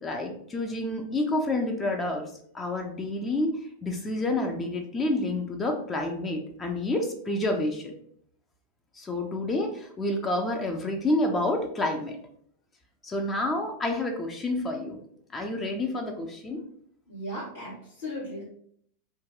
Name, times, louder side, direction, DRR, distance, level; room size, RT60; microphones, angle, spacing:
voice 1, 0.0-2.2 2.5-3.5 3.8-7.9 9.0-12.2 13.0-15.0 15.3-16.6, left 2 dB, 20° left, 3 dB, 0.4 m, -29 dB
voice 2, 17.1-18.4, equal, 60° left, -11 dB, 1.2 m, -36 dB
2.6 x 2.2 x 3.5 m, 0.64 s
figure-of-eight pair, 90°, 0 cm